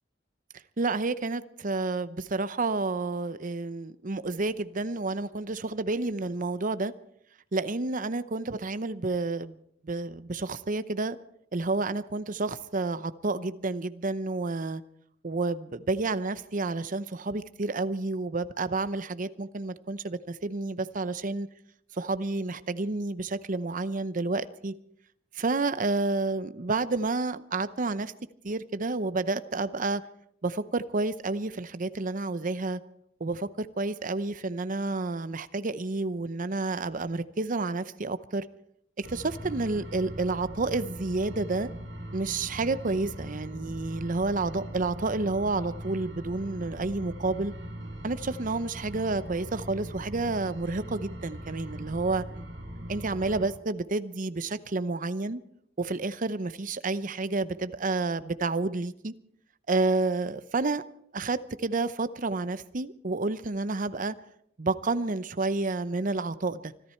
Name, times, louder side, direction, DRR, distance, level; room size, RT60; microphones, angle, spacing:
voice 1, 0.8-6.9 7.5-9.6 9.8-11.2 11.5-14.8 15.2-21.5 21.9-24.7 25.3-28.1 28.4-30.0 30.4-32.8 33.2-38.5 39.0-41.7 42.1-47.5 48.0-52.2 52.9-55.4 55.8-59.1 59.7-60.8 61.1-64.1 64.6-66.7, right 3 dB, 45° right, 13 dB, 0.7 m, -30 dB
sound 1, 39.0-53.5, equal, 75° right, 5.9 m, -40 dB
25.0 x 13.0 x 4.5 m, 0.70 s
head